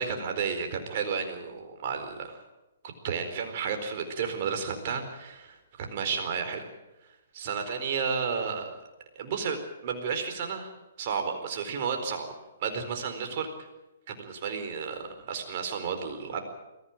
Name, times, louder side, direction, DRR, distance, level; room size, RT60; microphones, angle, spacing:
voice 1, 0.0-2.4 3.0-6.7 7.3-8.7 9.2-10.7 11.0-12.3 12.6-13.5 14.1-16.4, right 6 dB, 50° right, 5 dB, 4.4 m, -32 dB
22.5 x 15.5 x 9.1 m, 0.99 s
hypercardioid pair, 130°, 0 cm